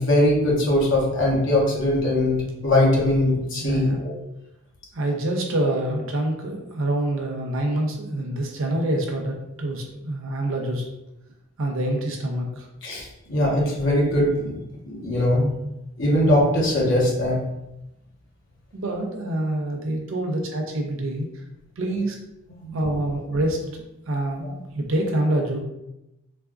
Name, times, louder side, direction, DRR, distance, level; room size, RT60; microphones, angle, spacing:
voice 1, 0.0-4.1 12.8-14.5 14.8-15.5 16.0-17.4 22.6-22.8, left 1 dB, 55° left, -4 dB, 1.0 m, -21 dB
voice 2, 3.6-4.0 4.9-10.9 11.6-12.7 18.7-21.3 21.8-22.1 22.7-23.6 24.1-25.6, right 1 dB, 60° right, 2 dB, 0.5 m, -26 dB
4.0 x 2.3 x 2.3 m, 0.90 s
head